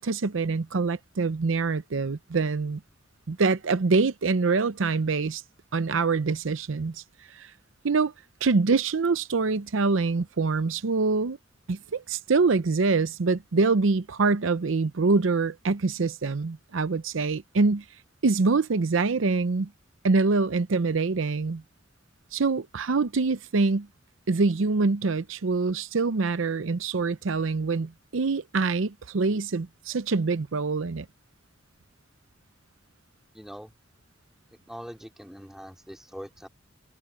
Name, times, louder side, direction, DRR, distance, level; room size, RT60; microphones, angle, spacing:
voice 1, 0.0-2.8 3.3-5.4 5.7-7.0 7.3-7.5 7.8-8.1 8.4-11.4 11.7-17.8 18.2-19.7 20.0-21.6 22.3-23.9 24.3-31.1, right 4 dB, 85° right, 0.6 m, -25 dB
voice 2, 33.3-33.7 34.7-36.5, equal, ahead, 3.6 m, -42 dB
head